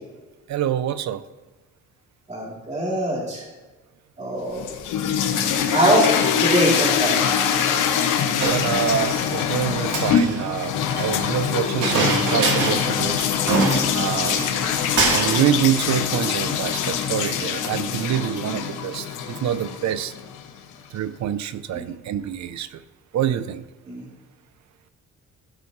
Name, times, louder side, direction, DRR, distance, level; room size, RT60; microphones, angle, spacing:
voice 1, 0.5-1.2 8.4-13.3 13.9-14.4 15.1-20.1 20.9-22.8 23.1-23.6, right 10 dB, 65° right, 14 dB, 0.7 m, -26 dB
voice 2, 2.3-3.4 4.2-4.7 5.7-6.1 6.4-7.3 21.7-22.0 23.9-24.1, right 1 dB, 25° right, -5 dB, 3.5 m, -23 dB
sound 1, 4.5-20.5, left 8 dB, 90° left, 1.2 m, -24 dB
Chink clink, 8.4-9.2 9.8-11.1 11.8-12.9 13.2-13.3 13.5-14.7 15.0-15.5, right 3 dB, 85° right, 2.5 m, -24 dB
15.5 x 7.0 x 3.3 m, 1.2 s
cardioid pair, 90°, 30 cm